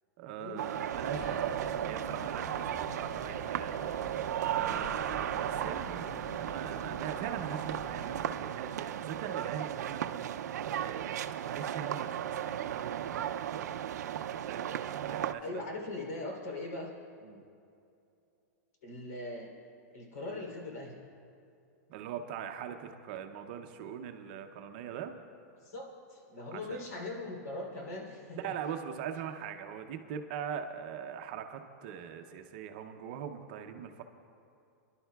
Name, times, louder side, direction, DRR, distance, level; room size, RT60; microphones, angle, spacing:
voice 1, 0.2-3.9 4.4-10.1 10.7-14.1 14.4-14.7 15.1-15.6 17.2-17.4 21.9-25.1 26.5-26.8 28.4-34.0, right 8 dB, 35° right, 6 dB, 0.6 m, -41 dB
sound 1, 0.6-15.3, right 10 dB, 85° right, 0.4 m, -35 dB
sound 2, 0.9-8.3, equal, 25° left, 2.1 m, -47 dB
voice 2, 1.1-1.5 15.4-16.9 18.8-19.5 19.9-21.0 25.6-28.6, left 2 dB, 80° left, 1 dB, 3.2 m, -40 dB
29.5 x 11.5 x 2.3 m, 2.6 s
supercardioid pair, 175°, 9 cm